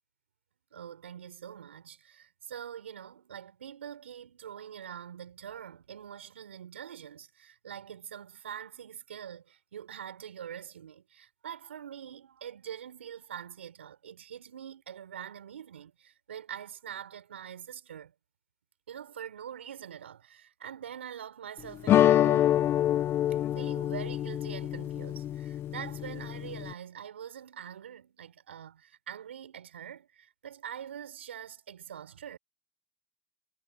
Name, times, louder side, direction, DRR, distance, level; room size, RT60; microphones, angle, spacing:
voice 1, 0.7-18.1 18.9-22.6 23.5-32.4, right 9 dB, 85° right, 4.5 m, -44 dB
sound 1, 21.9-26.7, left 12 dB, 40° left, 1.5 m, -26 dB
hypercardioid pair, 95°, 6 cm